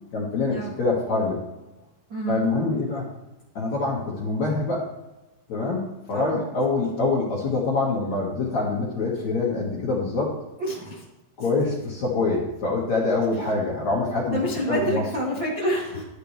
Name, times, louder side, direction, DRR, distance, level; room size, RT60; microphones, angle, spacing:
voice 1, 0.1-1.4 2.3-3.1 3.5-4.8 5.5-10.4 11.4-14.4 14.7-15.0, left 3 dB, 55° left, -5 dB, 2.2 m, -25 dB
voice 2, 2.1-2.5 6.1-6.4 10.6-11.0 14.3-16.0, right 1 dB, 75° right, -5 dB, 1.0 m, -27 dB
13.0 x 10.5 x 3.4 m, 1.0 s
omnidirectional pair, 5.8 m